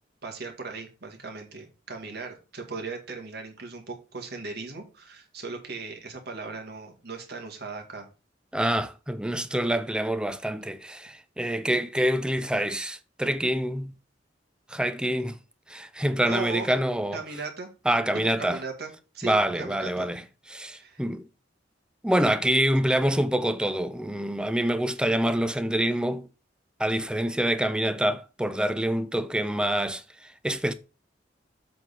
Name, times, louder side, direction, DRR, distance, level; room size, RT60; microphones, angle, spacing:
voice 1, 0.2-8.1 16.2-16.7 17.1-17.7 18.4-20.1 20.7-21.0, right 3 dB, 60° right, 2.0 m, -38 dB
voice 2, 8.5-13.9 14.7-15.4 15.7-17.2 17.9-18.6 19.2-20.2 20.5-21.3 22.0-26.3 26.8-30.7, right 1 dB, 5° right, 0.5 m, -26 dB
7.7 x 3.9 x 5.6 m
head